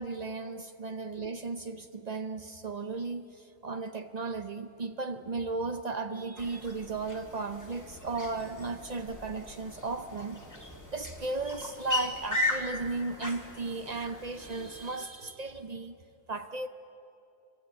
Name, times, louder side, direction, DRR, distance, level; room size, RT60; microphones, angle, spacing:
voice 1, 0.0-10.4 10.9-16.0 16.3-16.7, right 3 dB, 80° right, 0.3 m, -35 dB
sound 1, 6.4-14.9, left 2 dB, 10° left, 1.9 m, -38 dB
24.5 x 24.0 x 8.5 m
omnidirectional pair, 1.9 m